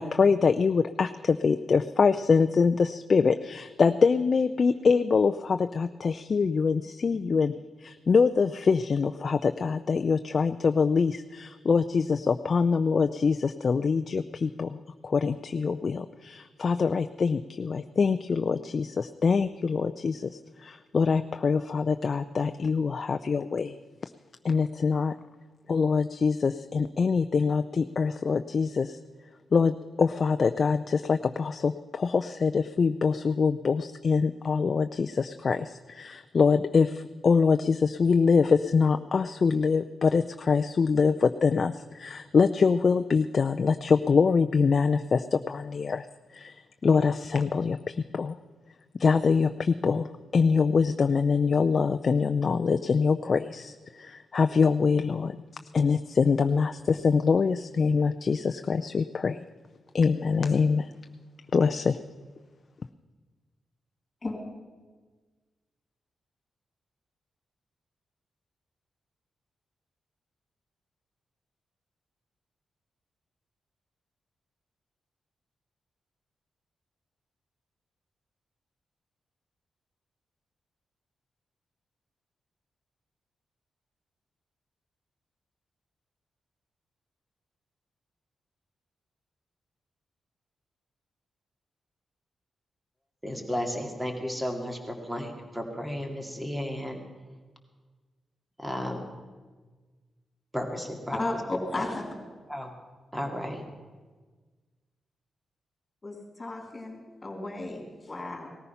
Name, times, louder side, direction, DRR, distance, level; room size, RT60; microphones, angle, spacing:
voice 1, 0.0-7.5 7.8-23.7 24.4-25.1 25.7-29.0 29.5-46.1 46.3-48.4 49.0-50.1 50.3-55.4 55.7-59.4 59.9-60.9 61.5-62.0, left 5 dB, 45° left, 0.4 m, -24 dB
voice 2, 93.2-97.0 98.6-99.1 100.5-101.4 102.5-102.7 103.1-103.6, equal, 10° right, 2.2 m, -33 dB
voice 3, 101.1-102.0 106.0-108.5, left 2 dB, 25° left, 3.7 m, -34 dB
18.5 x 14.0 x 5.7 m
cardioid pair, 110°, 0 cm